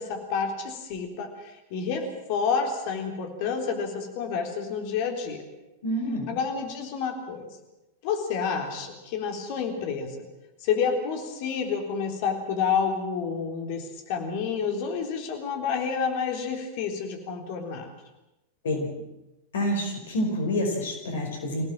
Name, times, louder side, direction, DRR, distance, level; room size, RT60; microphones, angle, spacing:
voice 1, 0.0-5.4 6.3-7.5 8.0-10.3 10.6-17.9, left 6 dB, 45° left, 3 dB, 3.8 m, -29 dB
voice 2, 5.8-6.3 18.6-18.9 19.5-21.6, equal, 60° left, 3 dB, 5.4 m, -28 dB
26.0 x 17.5 x 7.6 m, 0.99 s
figure-of-eight pair, 90°, 0 cm